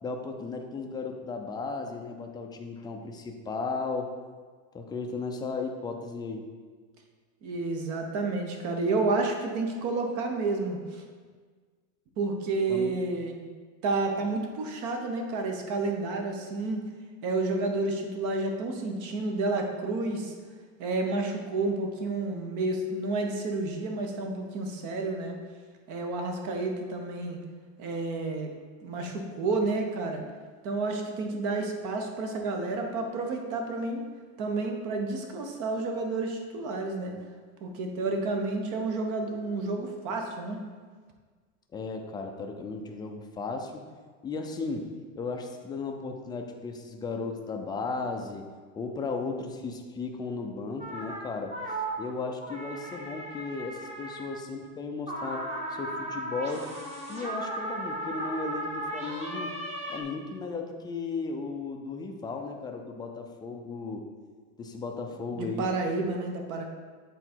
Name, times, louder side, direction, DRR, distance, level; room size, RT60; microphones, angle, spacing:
voice 1, 0.0-4.1 4.7-6.5 12.7-13.0 41.7-43.8 44.2-48.5 48.7-55.4 55.7-56.7 57.1-59.6 59.9-64.1 64.6-65.7, left 4 dB, 10° left, 3 dB, 0.4 m, -35 dB
voice 2, 7.4-11.0 12.2-13.5 13.8-16.8 17.2-20.3 20.8-25.4 25.9-27.4 27.8-28.5 28.8-30.2 30.6-34.0 34.4-37.2 37.6-40.6 65.4-66.6, right 3 dB, 50° right, 3 dB, 1.1 m, -30 dB
sound 1, 50.8-51.2 51.5-54.3 55.1-60.0, right 1 dB, 15° right, 1.1 m, -36 dB
8.1 x 3.9 x 4.4 m, 1.5 s
supercardioid pair, 140°, 39 cm